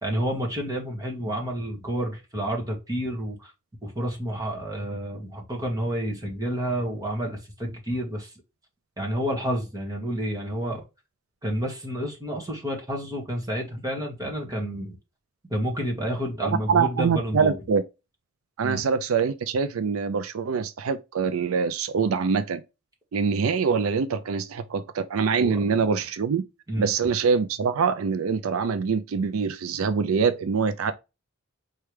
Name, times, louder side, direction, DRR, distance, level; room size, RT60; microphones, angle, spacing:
voice 1, 0.0-3.5 3.8-8.3 9.0-10.8 11.4-15.0 15.5-17.6 18.6-18.8 25.4-25.6 26.7-26.9, equal, 20° right, 1.7 m, -29 dB
voice 2, 16.4-17.8 18.6-22.6 23.1-26.4 26.8-30.9, right 5 dB, 85° right, 0.4 m, -24 dB
4.6 x 3.2 x 3.2 m
head